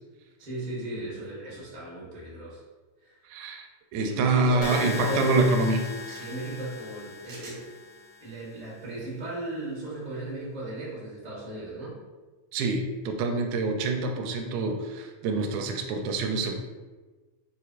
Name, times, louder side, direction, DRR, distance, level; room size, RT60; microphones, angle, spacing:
voice 1, 0.4-2.6 3.0-3.2 3.9-5.4 6.2-7.7 8.2-12.0, right 1 dB, 40° right, -7 dB, 0.5 m, -36 dB
voice 2, 3.3-3.7 3.9-5.9 12.5-16.5, right 3 dB, 85° right, 4 dB, 1.9 m, -26 dB
sound 1, 4.1-4.6 5.6-6.2 7.2-7.6, right 2 dB, 60° right, 1.9 m, -48 dB
sound 2, 4.6-8.6, left 4 dB, 80° left, 1.7 m, -38 dB
6.4 x 2.9 x 2.4 m, 1.3 s
omnidirectional pair, 3.3 m